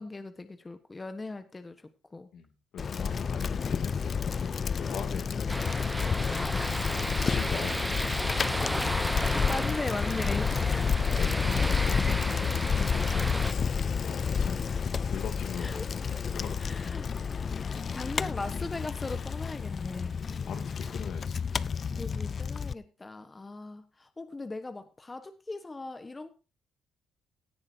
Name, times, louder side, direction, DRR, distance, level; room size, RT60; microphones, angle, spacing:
voice 1, 0.0-1.8 2.1-2.3 6.3-7.0 8.8-11.2 12.9-13.2 15.6-15.9 16.6-17.1 17.5-20.2 22.0-26.3, left 3 dB, 25° left, 9 dB, 1.3 m, -39 dB
voice 2, 2.3-4.5 4.8-5.6 6.9-8.2 10.3-10.5 11.1-13.1 14.0-14.8 15.1-16.6 17.1-17.2 20.4-21.4, left 7 dB, 70° left, 6 dB, 2.7 m, -42 dB
Bicycle, 2.8-22.7, left 6 dB, 45° left, 0.5 m, -30 dB
sound 1, 5.5-13.5, right 1 dB, 5° right, 0.9 m, -34 dB
17.0 x 9.7 x 2.8 m, 0.32 s
cardioid pair, 90°, 0 cm